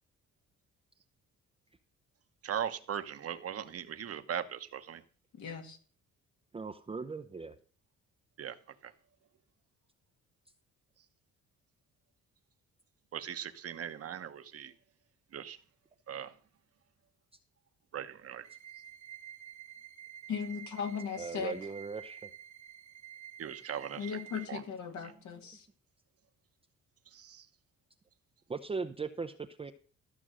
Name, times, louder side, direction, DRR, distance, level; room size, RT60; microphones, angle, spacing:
voice 1, 2.4-5.0 8.4-8.5 8.8-8.9 13.1-14.7 15.3-15.6 16.1-16.3 17.9-18.5 23.4-24.1 24.5-24.6 27.1-27.4, right 9 dB, 50° right, 10 dB, 1.1 m, -39 dB
voice 2, 5.4-5.8 20.3-21.5 24.0-25.7, left 6 dB, 70° left, 5 dB, 2.0 m, -37 dB
voice 3, 6.5-7.5 21.2-22.2 28.5-29.7, right 4 dB, 20° right, 6 dB, 0.6 m, -38 dB
sound 1, 18.4-24.4, right 9 dB, 65° right, 1.5 m, -50 dB
13.5 x 6.1 x 6.2 m, 0.43 s
cardioid pair, 90°, 30 cm